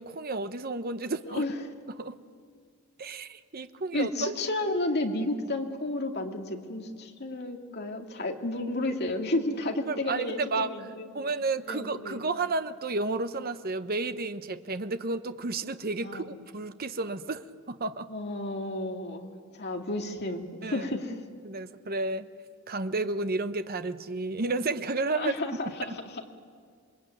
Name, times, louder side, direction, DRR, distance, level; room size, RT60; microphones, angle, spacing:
voice 1, 0.0-1.4 2.0-2.2 3.0-4.3 9.9-10.7 11.1-18.1 20.6-20.9 21.4-22.3 22.7-25.4, right 3 dB, 45° right, 10 dB, 0.9 m, -32 dB
voice 2, 1.3-1.6 3.9-11.1 11.7-12.2 16.0-16.4 18.1-21.2 25.1-26.2, left 2 dB, 50° left, 3 dB, 2.3 m, -32 dB
27.0 x 22.0 x 9.3 m, 2.1 s
head